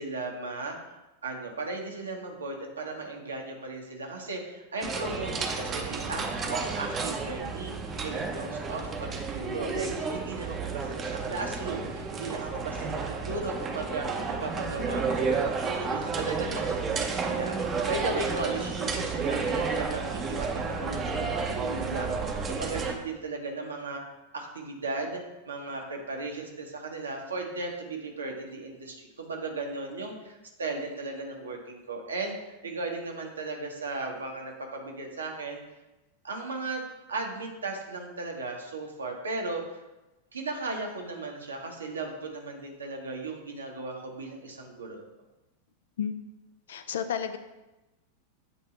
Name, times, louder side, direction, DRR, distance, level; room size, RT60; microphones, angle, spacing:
voice 1, 0.0-24.0 24.3-35.6 36.2-36.8 37.1-39.8 40.3-45.0, right 3 dB, 70° right, 1 dB, 1.0 m, -36 dB
sound 1, 4.8-22.9, right 4 dB, 25° right, 0.7 m, -31 dB
voice 2, 46.7-47.4, left 8 dB, 60° left, 10 dB, 0.4 m, -31 dB
8.2 x 2.7 x 4.2 m, 1.0 s
figure-of-eight pair, 90°, 0 cm